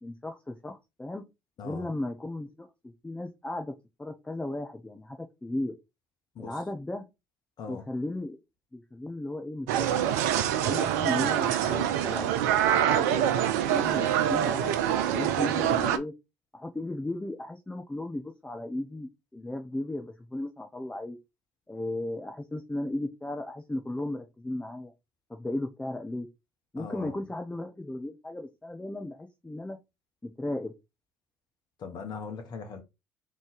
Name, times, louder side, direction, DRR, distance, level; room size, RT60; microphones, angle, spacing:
voice 1, 0.0-1.2 1.6-3.7 4.0-5.7 6.4-7.1 7.7-8.4 8.7-10.1 10.6-12.4 12.9-14.7 15.1-16.1 16.5-21.2 21.7-24.9 25.3-26.3 26.7-29.8 30.2-30.7, left 1 dB, 10° left, 0.8 m, -35 dB
voice 2, 7.6-7.9 26.8-27.1 31.8-32.8, left 5 dB, 50° left, 1.0 m, -39 dB
sound 1, 9.7-16.0, right 10 dB, 75° right, 0.5 m, -25 dB
3.9 x 3.2 x 3.9 m
hypercardioid pair, 55°, 9 cm